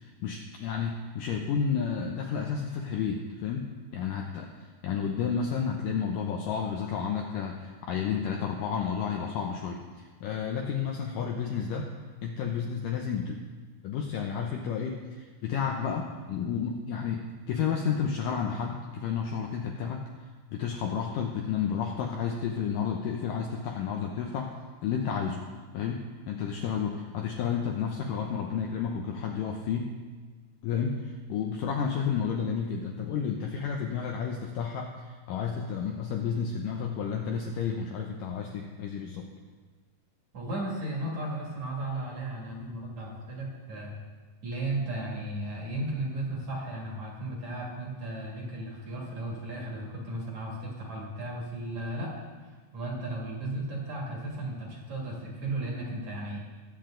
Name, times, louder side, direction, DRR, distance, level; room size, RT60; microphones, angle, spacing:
voice 1, 0.0-11.9 12.2-13.4 13.8-20.1 20.5-24.6 24.8-25.4 25.7-29.9 30.6-39.3, left 7 dB, 75° left, 1 dB, 2.0 m, -31 dB
voice 2, 40.3-44.0 44.4-52.2 52.7-56.4, right 1 dB, 50° right, -3 dB, 3.1 m, -35 dB
21.5 x 7.8 x 3.8 m, 1.4 s
omnidirectional pair, 4.7 m